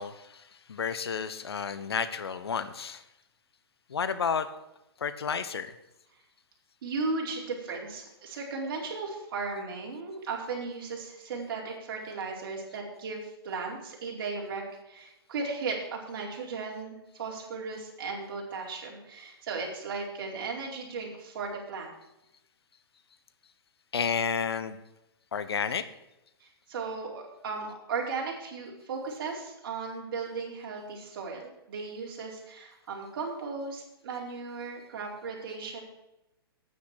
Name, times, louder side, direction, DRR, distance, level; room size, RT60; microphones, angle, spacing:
voice 1, 0.0-3.0 3.9-4.5 5.0-5.8 23.9-24.8 25.3-25.9, left 6 dB, 80° left, 13 dB, 1.2 m, -31 dB
voice 2, 6.8-21.9 26.4-35.8, right 4 dB, 60° right, -1 dB, 4.7 m, -36 dB
9.7 x 9.2 x 7.6 m, 0.92 s
hypercardioid pair, 130°, 13 cm